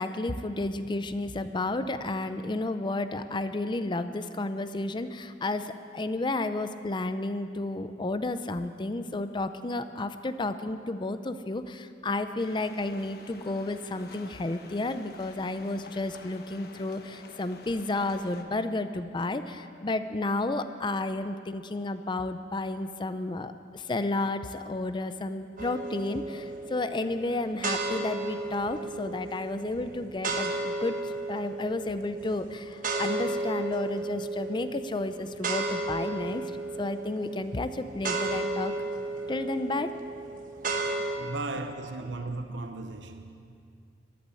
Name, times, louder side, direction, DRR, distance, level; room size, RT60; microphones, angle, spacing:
voice 1, 0.0-36.5 36.8-38.7 39.3-39.9, left 2 dB, 25° left, 0.5 m, -32 dB
sound 1, 12.4-18.4, left 3 dB, 60° left, 1.1 m, -49 dB
sound 2, 25.6-41.2, right 2 dB, 50° right, 1.2 m, -34 dB
voice 2, 41.2-43.4, right 2 dB, 85° right, 0.8 m, -36 dB
14.0 x 11.5 x 8.3 m
head